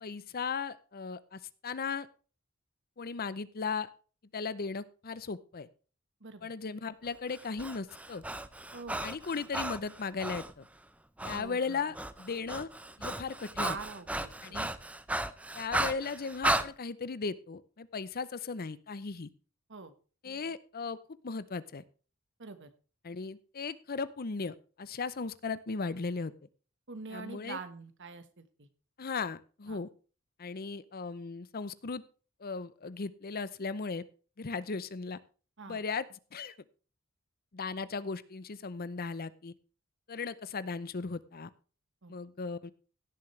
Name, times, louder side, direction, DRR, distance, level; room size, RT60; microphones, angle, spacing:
voice 1, 0.0-2.1 3.0-3.9 4.3-5.7 6.4-8.2 9.0-10.7 11.2-12.7 13.0-13.8 14.4-14.7 15.5-19.3 20.2-21.0 21.2-21.8 23.0-26.3 27.1-27.6 29.0-29.9 30.4-32.0 32.4-34.0 34.4-35.2 35.7-36.0 36.3-36.5 37.5-39.5 40.1-41.5 42.1-42.7, left 4 dB, 45° left, 16 dB, 0.7 m, -37 dB
voice 2, 6.2-6.5 8.7-9.1 11.2-11.8 13.6-14.7 19.7-19.9 22.4-22.7 26.9-28.7 29.7-29.8 35.6-35.8 42.0-42.1, right 4 dB, 60° right, 11 dB, 1.4 m, -44 dB
Breathing, 7.3-10.5 11.2-11.4 11.7-16.7, right 1 dB, 5° right, 0.6 m, -35 dB
17.0 x 7.5 x 3.3 m, 0.36 s
head